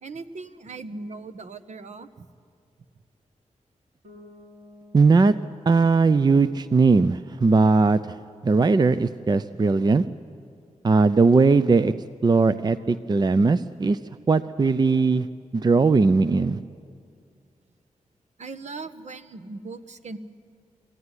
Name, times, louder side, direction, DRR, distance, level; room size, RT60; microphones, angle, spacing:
voice 1, 0.0-2.3 18.4-20.2, right 3 dB, 65° right, 11 dB, 1.1 m, -39 dB
Bass guitar, 4.0-7.9, left 2 dB, 85° right, 7.4 m, -53 dB
voice 2, 4.9-5.3 5.7-8.0 8.4-10.0 10.8-11.9 12.2-14.0 14.3-15.3 15.5-16.6, right 4 dB, 35° right, 13 dB, 0.5 m, -19 dB
23.5 x 15.5 x 9.7 m, 2.3 s
wide cardioid pair, 85°, 13 cm